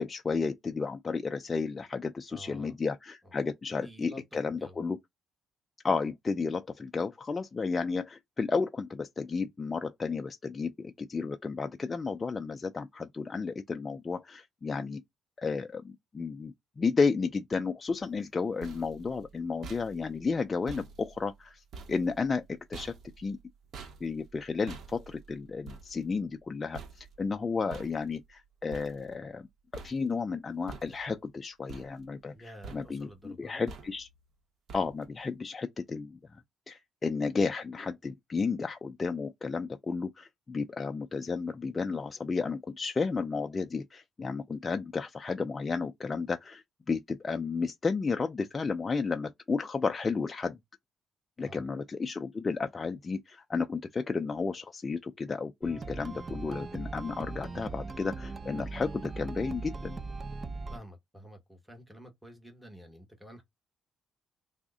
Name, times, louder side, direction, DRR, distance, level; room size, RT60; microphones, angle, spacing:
voice 1, 0.0-5.0 5.8-15.0 15.4-23.4 24.0-29.5 29.7-34.1 34.7-36.4 36.7-50.6 51.4-60.0, left 4 dB, 30° left, 0.3 m, -32 dB
voice 2, 2.3-2.7 3.2-3.3 3.7-4.2 4.5-4.8 32.3-33.6 51.4-51.7 60.7-63.4, equal, ahead, 1.1 m, -50 dB
sound 1, 18.2-29.5 29.7-30.3 30.7-31.3 31.7-32.4 32.6-33.2 33.7-34.2 34.7-35.2, right 4 dB, 65° right, 0.7 m, -49 dB
sound 2, 55.6-60.8, right 3 dB, 35° right, 0.5 m, -39 dB
3.5 x 2.0 x 3.6 m
cardioid pair, 90°, 0 cm